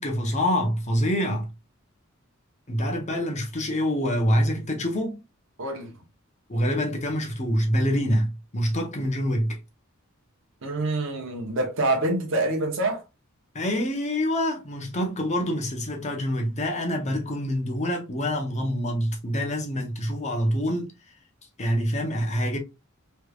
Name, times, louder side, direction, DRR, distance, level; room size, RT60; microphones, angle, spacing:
voice 1, 0.0-1.5 2.7-5.2 6.5-9.6 13.5-20.9 21.6-22.6, equal, 35° left, 0.8 m, -26 dB
voice 2, 5.6-5.9 10.6-13.0, right 2 dB, 65° right, 0.9 m, -26 dB
3.3 x 3.2 x 2.3 m
head